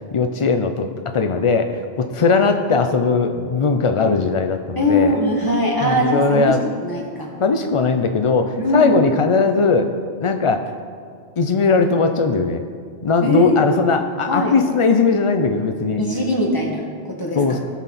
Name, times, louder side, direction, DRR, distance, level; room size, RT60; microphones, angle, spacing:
voice 1, 0.1-0.9 1.1-5.1 5.8-6.6 7.4-9.9 10.2-10.7 11.4-12.6 13.0-16.0 17.4-17.6, left 4 dB, 55° left, 6 dB, 0.3 m, -19 dB
voice 2, 4.8-7.3 8.6-9.0 13.2-13.6 14.3-14.6 16.0-17.6, left 1 dB, 20° left, -2 dB, 1.8 m, -21 dB
18.0 x 6.1 x 4.1 m, 2.1 s
omnidirectional pair, 1.2 m